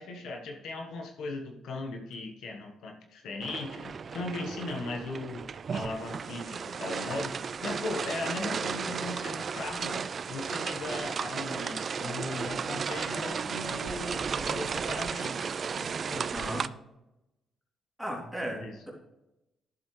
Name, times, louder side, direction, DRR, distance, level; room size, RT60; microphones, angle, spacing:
voice 1, 0.0-5.4 5.7-16.3 18.4-18.8, left 2 dB, 75° left, 3 dB, 1.2 m, -38 dB
sound 1, 3.4-16.7, right 6 dB, 45° right, 0.3 m, -34 dB
voice 2, 16.3-16.7 18.0-18.9, equal, ahead, -2 dB, 2.8 m, -36 dB
11.0 x 7.3 x 3.2 m, 0.93 s
cardioid pair, 90°, 0 cm